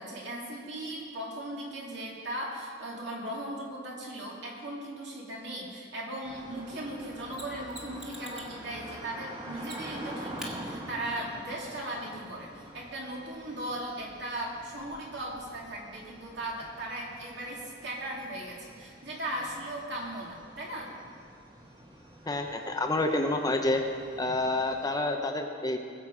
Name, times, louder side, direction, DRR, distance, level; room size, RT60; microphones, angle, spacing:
voice 1, 0.0-20.9, right 1 dB, 60° right, -3 dB, 2.8 m, -38 dB
sound 1, 6.2-24.9, right 1 dB, 20° right, 1.4 m, -46 dB
Mechanisms, 7.3-8.6 9.6-10.0 10.4-10.5 13.3-13.4, equal, ahead, 1.6 m, -44 dB
voice 2, 22.3-23.9 24.2-25.8, left 2 dB, 20° left, 4 dB, 0.7 m, -28 dB
20.0 x 7.7 x 4.9 m, 2.2 s
head